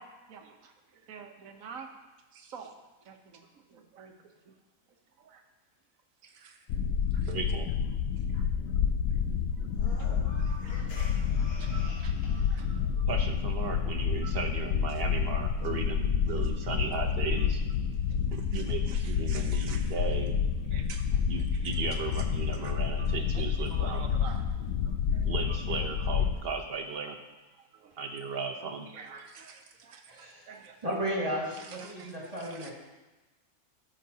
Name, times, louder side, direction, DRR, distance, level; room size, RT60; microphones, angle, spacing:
voice 1, 0.0-1.9 2.3-2.7 3.0-4.5 4.9-5.4 6.2-6.7 7.1-7.4 8.2-8.7 9.1-9.2 9.6-13.1 14.2-14.4 16.3-17.0 17.4-17.5 18.1-20.0 20.6-22.2 22.5-25.6 26.2-26.3 26.9-27.1 27.5-28.0 28.6-30.9 31.4-32.7, right 6 dB, 65° right, 4 dB, 1.3 m, -50 dB
sound 1, 6.7-26.3, left 7 dB, 70° left, 0.9 m, -29 dB
voice 2, 7.3-7.7 13.1-17.6 18.3-20.3 21.3-24.1 25.2-27.2 28.0-28.9, right 5 dB, 50° right, 4 dB, 0.9 m, -36 dB
sound 2, 9.7-12.7, left 3 dB, 90° left, 1.7 m, -48 dB
voice 3, 30.1-30.4 30.8-32.7, equal, 25° right, -4 dB, 2.0 m, -34 dB
13.5 x 6.5 x 2.8 m, 1.1 s
omnidirectional pair, 1.6 m